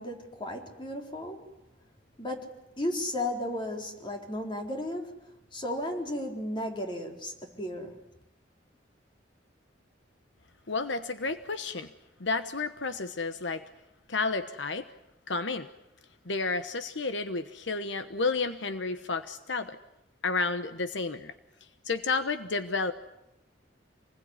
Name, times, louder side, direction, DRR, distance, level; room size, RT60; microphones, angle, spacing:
voice 1, 0.0-1.5 2.2-8.0, left 1 dB, 25° left, 2 dB, 4.1 m, -35 dB
voice 2, 10.7-11.9 12.2-13.6 14.1-14.9 15.3-15.7 16.2-19.8 20.2-21.3 21.8-22.9, left 4 dB, 80° left, 10 dB, 1.1 m, -31 dB
27.5 x 20.5 x 9.7 m, 0.89 s
head